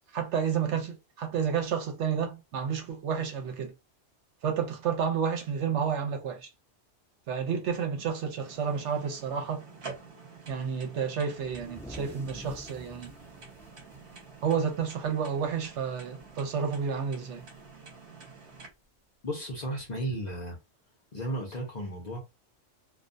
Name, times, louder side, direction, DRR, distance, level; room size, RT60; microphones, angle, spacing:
voice 1, 0.1-3.7 4.4-6.5 7.3-9.6 10.5-13.1 14.4-17.4, right 7 dB, 70° right, 0.9 m, -30 dB
sound 1, 8.4-18.7, right 4 dB, 50° right, 1.0 m, -48 dB
sound 2, 11.4-15.1 15.4-15.6 16.0-16.4 17.6-17.7 18.7-18.8, equal, 5° left, 0.4 m, -47 dB
voice 2, 19.2-20.6 21.1-22.2, right 1 dB, 45° left, 0.7 m, -34 dB
2.3 x 2.2 x 2.5 m
omnidirectional pair, 1.3 m